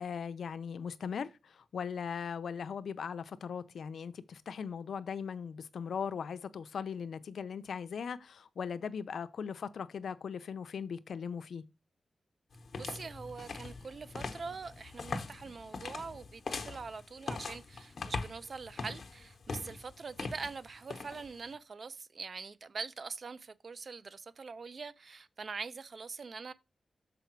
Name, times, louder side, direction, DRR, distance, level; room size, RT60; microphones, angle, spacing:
voice 1, 0.0-11.6, left 6 dB, 90° left, 0.6 m, -39 dB
sound 1, 12.5-21.5, left 4 dB, 60° left, 1.0 m, -42 dB
voice 2, 12.8-26.5, right 4 dB, 55° right, 0.5 m, -43 dB
7.0 x 4.9 x 4.5 m
wide cardioid pair, 115°, 0 cm